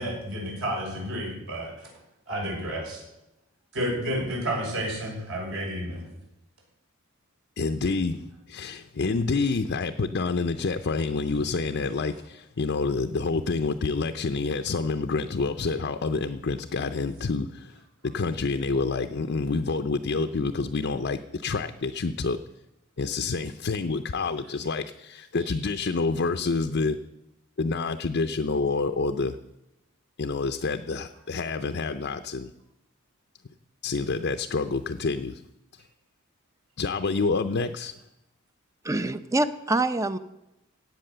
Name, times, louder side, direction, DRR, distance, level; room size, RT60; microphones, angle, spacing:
voice 1, 0.0-1.9 2.3-3.0 3.7-6.0, equal, 60° right, -2 dB, 6.0 m, -31 dB
voice 2, 7.6-17.8 18.0-22.4 23.0-27.0 27.6-29.4 30.2-32.5 33.8-35.4 36.8-37.9, left 4 dB, 50° left, 8 dB, 0.6 m, -28 dB
voice 3, 38.8-40.2, right 2 dB, 15° right, 12 dB, 0.6 m, -25 dB
16.5 x 8.2 x 6.8 m, 0.91 s
head